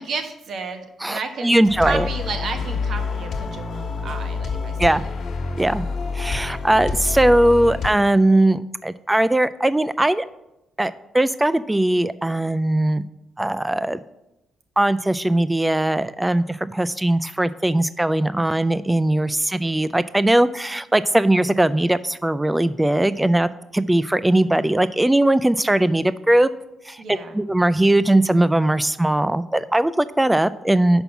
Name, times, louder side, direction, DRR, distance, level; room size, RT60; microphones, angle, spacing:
voice 1, 0.0-4.8 6.8-6.9 27.0-27.4, right 4 dB, 60° right, 6 dB, 1.2 m, -32 dB
voice 2, 1.0-2.1 4.8-5.0 5.6-5.9 6.1-10.2 10.8-13.0 13.4-14.0 14.8-26.5 26.9-31.0, right 1 dB, 10° right, 15 dB, 0.3 m, -19 dB
sound 1, 1.6-7.9, left 4 dB, 60° left, 1.6 m, -27 dB
6.0 x 5.4 x 6.9 m, 0.88 s
cardioid pair, 90°, 0 cm